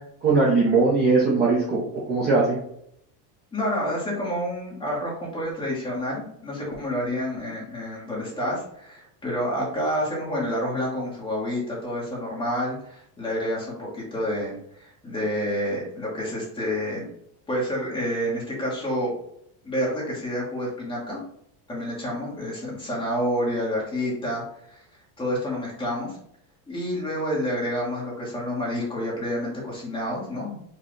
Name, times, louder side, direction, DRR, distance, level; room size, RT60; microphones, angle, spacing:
voice 1, 0.2-1.8 2.1-2.6, right 3 dB, 20° right, -6 dB, 0.6 m, -20 dB
voice 2, 3.5-17.1 17.5-19.1 19.6-21.2 21.7-24.4 24.7-24.8 25.2-26.2 26.7-30.6, equal, 10° left, -5 dB, 1.1 m, -29 dB
4.5 x 2.3 x 3.1 m, 0.71 s
cardioid pair, 165°, 48 cm